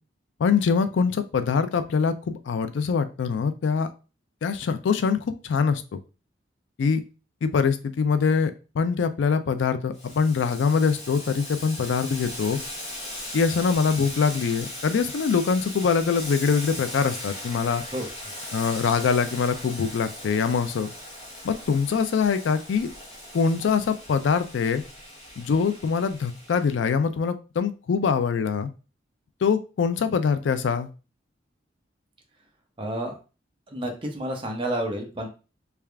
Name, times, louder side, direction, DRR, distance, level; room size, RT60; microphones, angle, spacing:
voice 1, 0.4-3.9 4.4-5.8 6.8-7.0 7.4-12.6 13.3-17.8 18.5-20.9 21.4-22.9 23.3-24.8 25.4-28.7 29.4-30.9, left 5 dB, 75° left, 10 dB, 0.4 m, -24 dB
Boiling, 9.9-26.7, left 1 dB, 35° left, 0.9 m, -39 dB
voice 2, 32.8-33.2 33.7-35.3, right 1 dB, 25° right, 2 dB, 0.8 m, -30 dB
3.4 x 2.3 x 3.3 m, 0.32 s
head